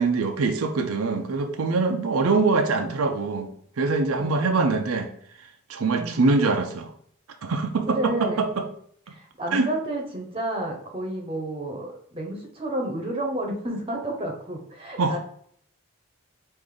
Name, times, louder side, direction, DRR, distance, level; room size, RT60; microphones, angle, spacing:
voice 1, 0.0-3.5 3.8-5.1 5.7-6.9 7.4-8.7 9.5-9.7 15.0-15.1, right 3 dB, 80° right, 5 dB, 0.5 m, -23 dB
voice 2, 4.1-4.7 5.9-6.3 7.9-8.4 9.1-15.2, right 1 dB, 25° right, 1 dB, 0.8 m, -31 dB
4.9 x 2.6 x 3.8 m, 0.63 s
head